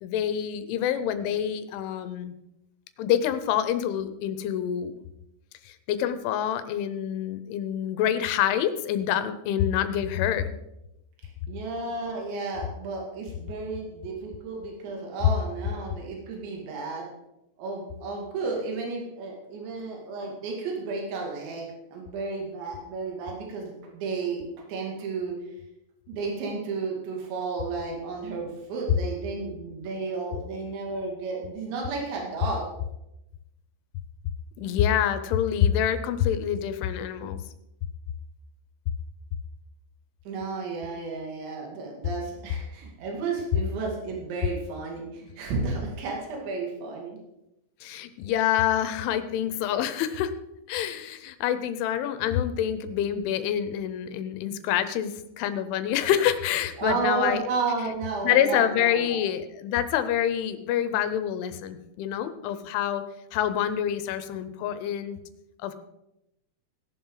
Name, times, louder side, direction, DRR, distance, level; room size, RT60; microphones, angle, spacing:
voice 1, 0.0-2.3 3.0-4.9 5.7-10.5 34.6-37.4 47.8-50.3 50.7-57.4 58.2-63.0 63.3-65.2 65.6-65.7, left 10 dB, 85° left, 11 dB, 3.3 m, -26 dB
voice 2, 11.5-17.1 17.6-25.3 26.1-32.7 40.3-47.2 56.8-59.2, right 4 dB, 70° right, -1 dB, 4.7 m, -32 dB
17.5 x 11.5 x 4.0 m, 0.88 s
omnidirectional pair, 5.4 m